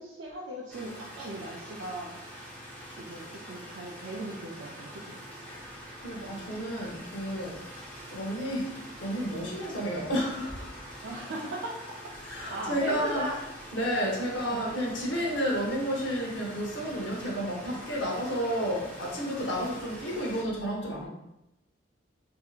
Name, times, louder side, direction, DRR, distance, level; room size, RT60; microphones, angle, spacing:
voice 1, 0.0-2.2 2.9-5.2 11.0-11.8 12.5-13.4 14.5-14.6, right 1 dB, 80° right, -5 dB, 0.4 m, -38 dB
sound 1, 0.7-20.4, equal, 10° left, 0.5 m, -45 dB
voice 2, 5.5-7.6 8.1-8.7 9.0-11.0 12.2-13.3 13.7-21.1, equal, 75° left, -2 dB, 0.8 m, -31 dB
2.7 x 2.6 x 2.4 m, 0.91 s
head